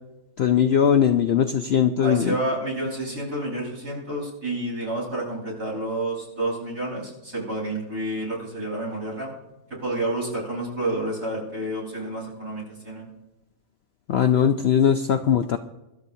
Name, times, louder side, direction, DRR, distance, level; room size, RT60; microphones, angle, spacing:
voice 1, 0.4-2.4 14.1-15.6, left 8 dB, 60° left, 7 dB, 0.7 m, -20 dB
voice 2, 2.0-9.3 9.8-13.1, right 1 dB, 60° right, -3 dB, 5.5 m, -29 dB
25.0 x 12.0 x 2.7 m, 0.98 s
omnidirectional pair, 1.6 m